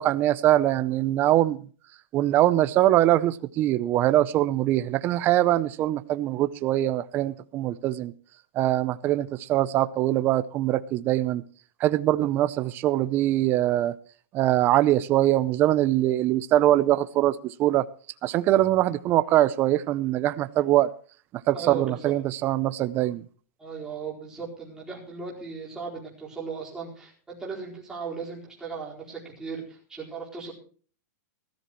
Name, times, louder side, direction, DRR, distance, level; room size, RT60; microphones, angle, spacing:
voice 1, 0.0-1.6 2.1-8.1 8.5-11.4 11.8-13.9 14.3-17.9 18.2-20.9 21.5-23.2, right 14 dB, 20° right, 14 dB, 0.6 m, -23 dB
voice 2, 21.5-22.1 23.6-30.5, right 5 dB, 5° right, -5 dB, 4.5 m, -37 dB
19.5 x 13.5 x 3.1 m, 0.40 s
supercardioid pair, 170°, 9 cm